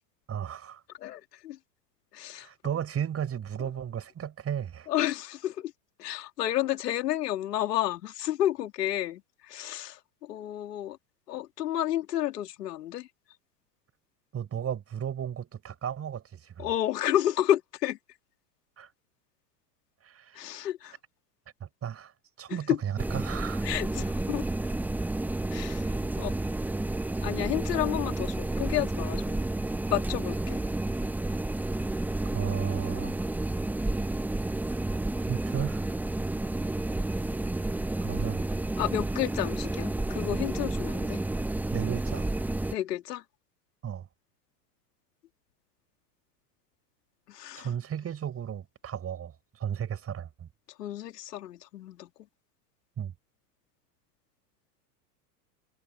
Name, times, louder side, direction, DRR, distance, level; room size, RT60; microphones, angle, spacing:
voice 1, 0.3-0.8 2.4-4.9 14.3-16.7 18.8-18.9 20.0-20.5 21.6-22.1 22.4-23.7 32.3-33.3 35.3-35.9 38.0-38.4 41.7-42.3 43.8-44.1 47.5-50.5 53.0-53.1, right 9 dB, 30° right, 6.2 m, -34 dB
voice 2, 1.0-1.6 2.1-2.5 4.9-5.7 6.0-11.0 11.3-13.1 16.6-18.0 20.3-21.0 22.5-22.8 23.6-24.4 25.5-26.3 27.2-29.3 29.9-30.6 38.8-41.2 42.7-43.2 47.3-47.7 50.8-52.1, left 12 dB, 80° left, 3.0 m, -31 dB
sound 1, 23.0-42.8, right 2 dB, 5° right, 0.7 m, -31 dB
hypercardioid pair, 100°, 48 cm